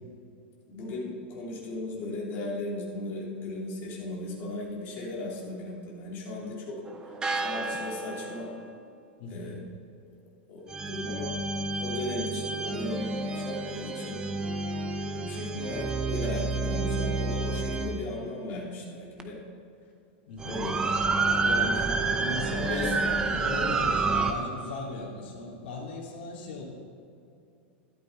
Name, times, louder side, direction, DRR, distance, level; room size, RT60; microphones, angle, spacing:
voice 1, 0.7-8.5 9.3-9.6 10.5-11.4 11.8-14.2 15.1-19.4 20.4-20.9 21.4-22.3 22.6-23.0 23.3-23.5, left 2 dB, 35° left, -4 dB, 2.9 m, -36 dB
sound 1, 6.9-8.7 10.7-18.1 19.2-19.3 20.4-24.3, right 3 dB, 10° right, 0.7 m, -29 dB
voice 2, 9.2-9.6 20.3-20.6 21.4-21.9 22.2-26.6, left 2 dB, 60° left, -3 dB, 3.5 m, -38 dB
12.5 x 12.0 x 4.1 m, 2.6 s
supercardioid pair, 160°, 6 cm